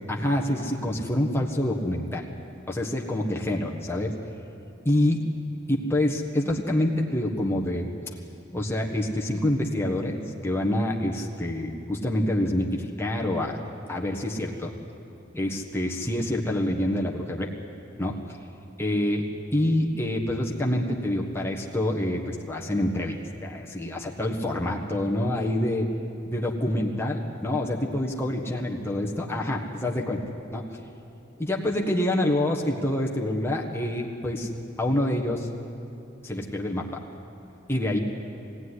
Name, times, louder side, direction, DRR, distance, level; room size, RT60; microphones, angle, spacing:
voice 1, 0.1-2.3 2.7-4.1 4.8-5.2 5.7-7.9 8.5-13.6 13.9-14.7 15.3-17.5 18.0-18.2 18.8-19.2 19.5-23.1 23.4-25.9 26.3-30.2 30.5-30.7 31.4-34.5 34.8-35.5 36.2-37.0 37.7-38.0, left 1 dB, 10° left, -1 dB, 1.4 m, -26 dB
21.5 x 16.0 x 9.9 m, 2.7 s
head